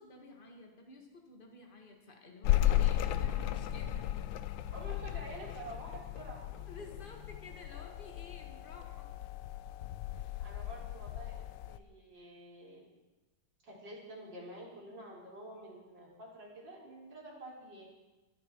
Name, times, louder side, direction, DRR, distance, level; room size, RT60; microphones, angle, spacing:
voice 1, 0.0-4.1 6.7-9.1, left 2 dB, 25° left, 2 dB, 2.0 m, -52 dB
sound 1, 2.4-11.8, left 13 dB, 75° left, 1.3 m, -35 dB
voice 2, 4.7-6.6 9.7-9.9 10.4-12.9 13.6-17.9, right 1 dB, 55° right, -4 dB, 4.6 m, -48 dB
23.0 x 10.0 x 4.7 m, 1.1 s
omnidirectional pair, 2.3 m